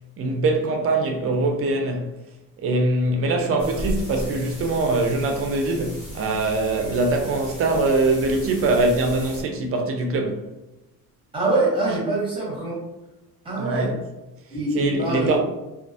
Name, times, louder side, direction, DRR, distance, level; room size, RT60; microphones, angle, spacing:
voice 1, 0.2-2.1 2.6-10.4 13.6-14.0 14.7-15.4, right 2 dB, 40° right, 0.4 m, -22 dB
sound 1, 3.6-9.4, equal, 40° left, 1.1 m, -35 dB
voice 2, 11.3-12.8 13.4-13.9 14.5-15.4, right 2 dB, 15° right, 0.9 m, -24 dB
2.3 x 2.3 x 2.6 m
cardioid pair, 155°, 37 cm